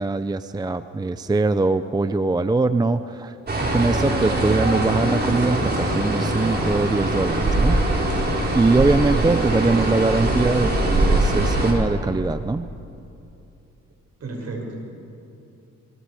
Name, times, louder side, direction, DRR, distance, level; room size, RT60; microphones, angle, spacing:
voice 1, 0.0-3.3 3.6-7.8 8.5-12.7, right 3 dB, 15° right, 11 dB, 0.6 m, -22 dB
sound 1, 3.5-11.7, right 1 dB, 35° right, 4.7 m, -22 dB
voice 2, 14.2-14.9, right 3 dB, 55° right, 1 dB, 6.1 m, -32 dB
27.5 x 23.0 x 4.9 m, 2.7 s
cardioid pair, 90°, 30 cm